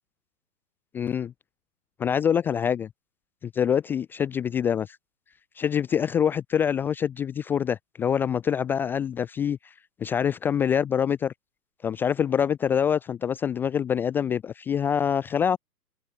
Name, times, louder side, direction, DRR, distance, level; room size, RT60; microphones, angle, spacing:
voice 1, 0.9-1.3 2.0-2.9 3.4-5.0 5.6-9.6 10.0-11.3 11.8-15.6, left 8 dB, 5° left, 0.7 m, -25 dB
open air
hypercardioid pair, 145°, 50 cm